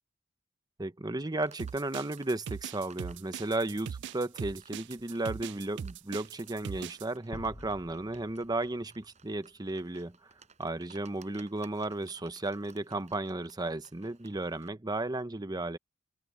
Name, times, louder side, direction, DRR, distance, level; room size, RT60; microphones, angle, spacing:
voice 1, 0.8-10.3 10.6-15.8, right 2 dB, 20° right, 0.8 m, -34 dB
Livestock farm animals working animals, 1.3-14.7, right 5 dB, 35° right, 6.9 m, -60 dB
sound 1, 1.6-7.1, right 7 dB, 60° right, 0.4 m, -40 dB
sound 2, 7.3-10.2, left 1 dB, 35° left, 1.2 m, -50 dB
head